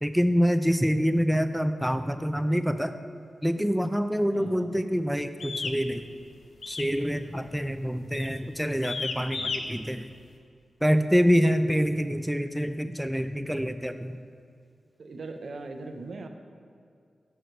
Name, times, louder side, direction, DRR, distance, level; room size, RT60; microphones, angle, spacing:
voice 1, 0.0-2.9 3.4-6.0 6.7-10.1 10.8-14.2, equal, ahead, 10 dB, 0.3 m, -26 dB
voice 2, 4.3-4.7 15.0-16.3, right 3 dB, 70° right, 6 dB, 0.5 m, -40 dB
sound 1, 5.4-5.8 6.6-7.0 7.2-7.6 8.1-8.4 8.8-9.6, left 4 dB, 80° left, 0.5 m, -33 dB
6.5 x 4.7 x 4.5 m, 2.3 s
cardioid pair, 75°, 0 cm